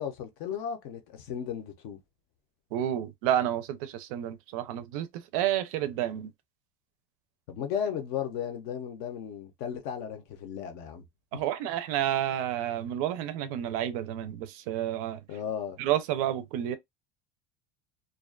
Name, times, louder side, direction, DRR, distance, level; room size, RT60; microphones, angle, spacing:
voice 1, 0.0-2.0 7.5-11.1 11.3-11.4 15.3-15.8, left 8 dB, 45° left, 0.6 m, -35 dB
voice 2, 2.7-5.1 5.3-6.3 11.3-15.2 15.8-16.8, right 11 dB, 60° right, 0.4 m, -30 dB
2.4 x 2.2 x 2.3 m
cardioid pair, 175°, 21 cm